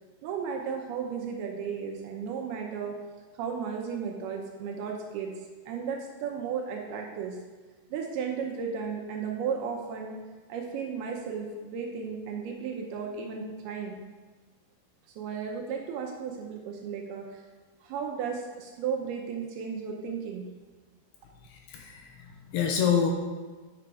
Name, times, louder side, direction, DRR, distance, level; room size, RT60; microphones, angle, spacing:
voice 1, 0.2-3.0 3.3-5.3 5.7-7.4 7.9-10.2 10.5-14.0 15.2-17.4 17.8-20.5, right 6 dB, 75° right, 1 dB, 2.5 m, -34 dB
voice 2, 21.4-23.1, left 7 dB, 80° left, 3 dB, 2.5 m, -28 dB
7.7 x 6.5 x 4.8 m, 1.3 s
omnidirectional pair, 5.0 m